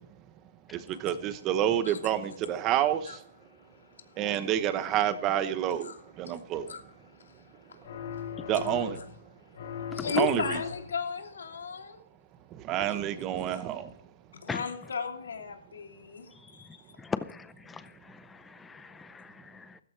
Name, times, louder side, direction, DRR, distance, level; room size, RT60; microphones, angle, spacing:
voice 1, 0.7-3.0 4.2-5.9 6.2-6.7 8.5-9.0 10.2-10.4 12.7-13.9, right 11 dB, 20° right, 0.9 m, -28 dB
voice 2, 3.0-4.3 5.8-6.4 6.7-8.7 8.9-12.0 12.9-13.0 13.5-13.6 14.4-17.0, left 6 dB, 80° left, 2.9 m, -38 dB
sound 1, 7.8-9.2 9.5-11.1, left 8 dB, 55° left, 5.3 m, -39 dB
voice 3, 16.7-19.8, left 5 dB, 5° left, 0.5 m, -40 dB
15.0 x 13.5 x 3.3 m
hypercardioid pair, 165°, 0 cm